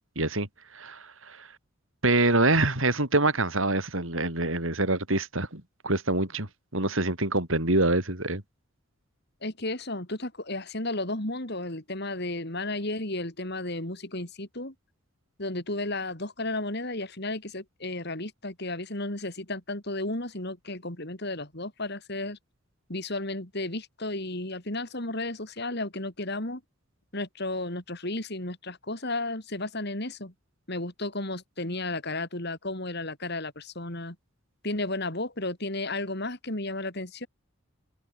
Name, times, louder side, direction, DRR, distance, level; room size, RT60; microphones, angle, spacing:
voice 1, 0.2-0.5 0.7-1.5 2.0-8.4, right 2 dB, 70° right, 6.3 m, -25 dB
voice 2, 9.4-14.7 15.4-22.4 22.9-26.6 27.1-30.3 30.7-34.2 34.6-37.3, left 2 dB, 50° left, 4.1 m, -33 dB
open air
head